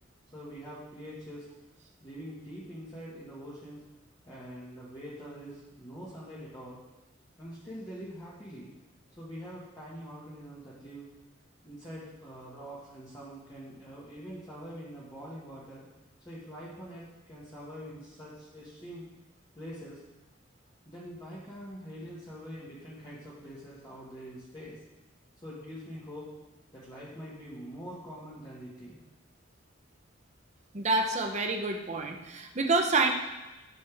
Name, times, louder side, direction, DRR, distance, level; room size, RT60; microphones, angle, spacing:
voice 1, 0.3-1.5 2.0-3.8 4.2-6.8 7.4-8.7 9.2-11.1 11.6-15.8 16.3-19.1 19.6-20.0 20.9-24.8 25.4-26.3 26.7-29.0, equal, 20° left, -8 dB, 1.8 m, -44 dB
voice 2, 30.7-33.1, right 3 dB, 35° right, 3 dB, 0.9 m, -27 dB
10.5 x 6.8 x 3.5 m, 1.1 s
head